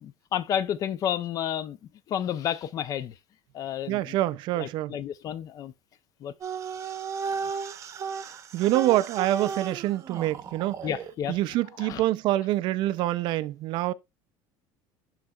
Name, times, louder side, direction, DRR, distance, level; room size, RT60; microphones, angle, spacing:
voice 1, 0.0-1.8 2.1-3.1 3.5-4.2 4.6-5.7 6.2-6.3 10.8-11.4 11.8-12.0, left 10 dB, 35° left, 0.5 m, -31 dB
voice 2, 3.9-4.9 8.5-10.8 11.3-13.9, right 15 dB, 50° right, 0.4 m, -26 dB
sound 1, 6.4-11.1, right 6 dB, 30° right, 0.8 m, -34 dB
11.5 x 3.9 x 2.3 m
cardioid pair, 165°, 10 cm